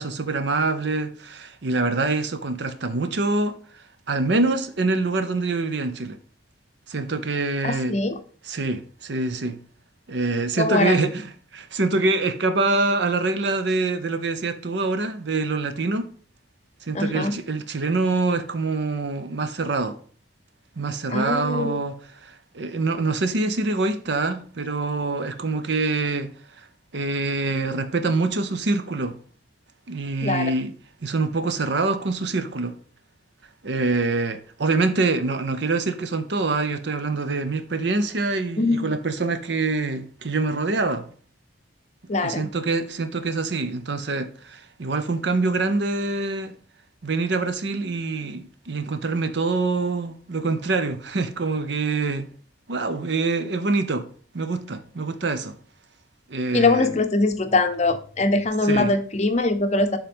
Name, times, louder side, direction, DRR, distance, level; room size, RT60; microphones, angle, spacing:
voice 1, 0.0-6.2 6.9-8.0 8.5-9.6 10.1-11.2 11.5-16.1 16.8-20.0 20.8-21.9 22.2-26.3 26.6-26.7 26.9-29.2 29.9-30.7 31.0-32.8 33.6-41.1 42.2-46.6 47.0-52.3 52.7-54.1 54.3-55.6 56.3-56.9 58.7-58.9, right 3 dB, 60° right, 0.7 m, -25 dB
voice 2, 7.6-8.2 10.6-11.1 16.9-17.4 21.1-21.8 30.2-30.5 38.6-38.9 42.1-42.5 56.5-60.0, left 2 dB, 35° left, 0.6 m, -22 dB
7.2 x 3.8 x 5.2 m
head